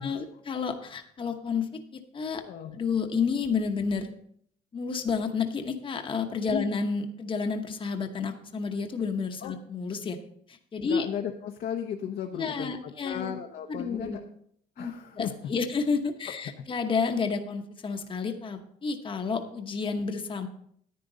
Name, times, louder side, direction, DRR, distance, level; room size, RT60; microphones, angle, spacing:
voice 1, 0.0-2.4 2.7-4.1 4.7-10.2 10.5-11.1 12.4-13.3 13.7-14.2 14.8-20.5, left 5 dB, 30° left, 5 dB, 1.0 m, -30 dB
voice 2, 10.8-14.2 14.8-15.3, left 8 dB, 65° left, 3 dB, 0.9 m, -35 dB
10.5 x 9.3 x 3.9 m, 0.66 s
cardioid pair, 110°, 17 cm